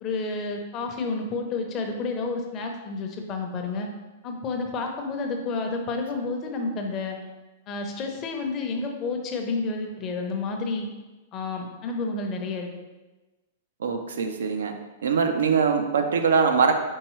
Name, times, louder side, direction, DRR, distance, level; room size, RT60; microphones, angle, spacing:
voice 1, 0.0-3.9 4.2-7.2 7.7-10.9 11.3-12.7, left 3 dB, 30° left, 3 dB, 0.6 m, -30 dB
voice 2, 13.8-14.7 15.0-16.7, right 5 dB, 90° right, 6 dB, 0.5 m, -22 dB
4.6 x 3.5 x 3.1 m, 1.1 s
hypercardioid pair, 140°, 0 cm